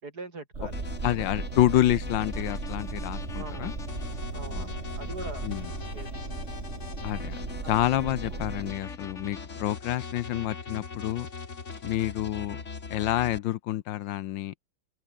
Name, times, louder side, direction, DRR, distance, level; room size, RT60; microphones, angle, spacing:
voice 1, 0.0-0.8 3.4-3.7 4.3-5.5 5.9-6.1 7.6-7.8 8.3-8.5 10.3-10.4, right 3 dB, 55° right, 4.7 m, -42 dB
sound 1, 0.5-8.7, right 3 dB, 35° right, 3.1 m, -36 dB
sound 2, 0.7-13.4, left 5 dB, 40° left, 2.2 m, -40 dB
voice 2, 1.0-3.7 4.5-4.7 5.4-5.7 7.0-11.3 11.8-12.6 12.9-14.5, left 13 dB, 75° left, 1.4 m, -28 dB
open air
omnidirectional pair, 2.1 m